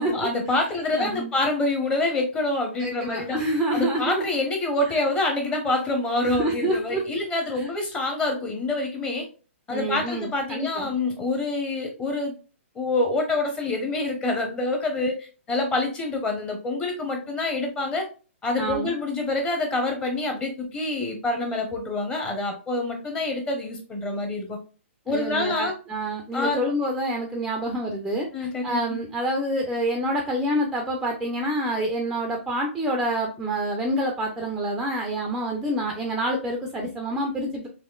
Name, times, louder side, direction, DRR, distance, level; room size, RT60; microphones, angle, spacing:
voice 1, 0.0-3.4 3.7-9.3 9.7-12.3 12.7-18.1 18.4-24.6 25.1-25.7 26.3-26.6 28.3-28.8, left 2 dB, 15° left, 3 dB, 0.8 m, -26 dB
voice 2, 0.9-1.3 2.8-4.2 6.2-7.0 7.6-7.7 9.7-10.9 18.6-19.0 25.1-28.3 28.6-37.7, right 1 dB, 5° right, 2 dB, 0.4 m, -27 dB
4.2 x 3.0 x 2.3 m, 0.36 s
hypercardioid pair, 155°, 7 cm